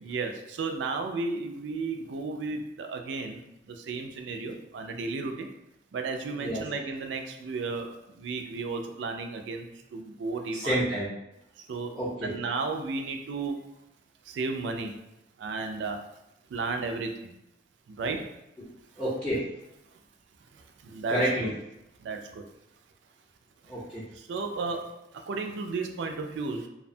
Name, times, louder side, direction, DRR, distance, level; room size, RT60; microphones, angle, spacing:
voice 1, 0.0-5.5 5.9-10.7 11.6-13.6 14.3-14.9 15.4-16.0 16.5-17.3 17.9-18.3 20.5-21.5 22.0-22.4 24.1-26.7, right 4 dB, 90° right, 5 dB, 0.3 m, -34 dB
voice 2, 10.5-11.1 12.0-12.3 19.0-19.4 21.1-21.5 23.7-24.0, equal, 5° left, -12 dB, 0.5 m, -28 dB
2.6 x 2.1 x 2.6 m, 0.87 s
head